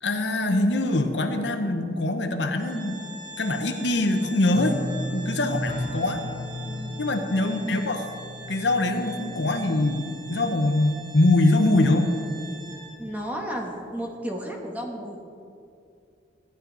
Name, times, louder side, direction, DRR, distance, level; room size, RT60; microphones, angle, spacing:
voice 1, 0.0-3.0 3.4-4.8 5.1-6.2 7.0-8.1 8.5-12.1, left 2 dB, 85° left, 6 dB, 1.1 m, -23 dB
Organ, 2.6-13.2, right 2 dB, 65° right, 2.7 m, -43 dB
sound 1, 4.5-11.4 11.7-12.3 12.6-12.7, left 1 dB, 25° left, 1.0 m, -36 dB
voice 2, 6.6-7.0 13.0-15.2, equal, 10° right, 0 dB, 1.4 m, -33 dB
15.0 x 11.0 x 4.1 m, 2.5 s
head